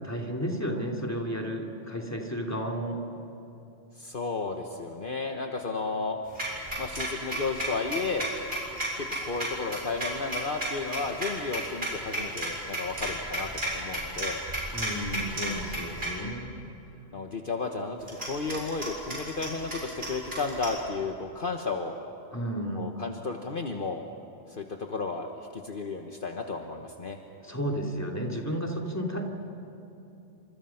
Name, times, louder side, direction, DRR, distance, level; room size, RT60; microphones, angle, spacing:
voice 1, 0.0-3.0 14.7-16.7 22.3-23.0 27.4-29.2, equal, 15° left, 1 dB, 2.8 m, -32 dB
voice 2, 4.0-6.2 6.8-8.3 9.0-14.4 17.1-22.0 22.8-24.1 24.5-27.2, left 4 dB, 50° left, 3 dB, 1.4 m, -33 dB
sound 1, 6.3-16.1 18.0-20.8, right 1 dB, 60° right, 7.5 m, -33 dB
29.0 x 26.5 x 5.8 m, 2.9 s
omnidirectional pair, 1.1 m